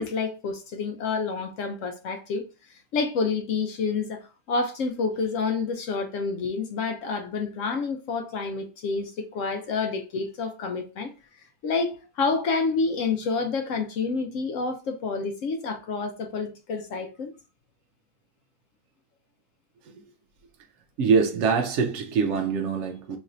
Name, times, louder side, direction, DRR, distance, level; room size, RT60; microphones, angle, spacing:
voice 1, 0.0-11.1 11.6-17.3, left 4 dB, 70° left, 0.8 m, -28 dB
voice 2, 21.0-23.2, right 5 dB, 65° right, 0.7 m, -24 dB
3.1 x 2.5 x 4.1 m
omnidirectional pair, 1.6 m